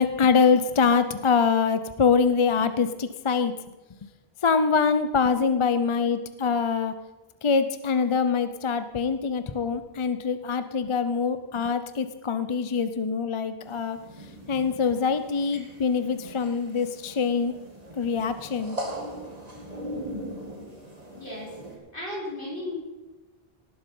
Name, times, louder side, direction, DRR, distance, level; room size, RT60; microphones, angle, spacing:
voice 1, 0.0-3.5 4.4-6.9 7.4-17.5 18.0-18.8, left 5 dB, 40° left, 11 dB, 0.5 m, -24 dB
sound 1, 13.6-21.8, right 1 dB, 40° right, 2.3 m, -40 dB
voice 2, 21.1-21.6 21.9-22.8, left 1 dB, 55° left, -4 dB, 4.4 m, -35 dB
18.0 x 7.5 x 5.4 m, 1.2 s
omnidirectional pair, 1.0 m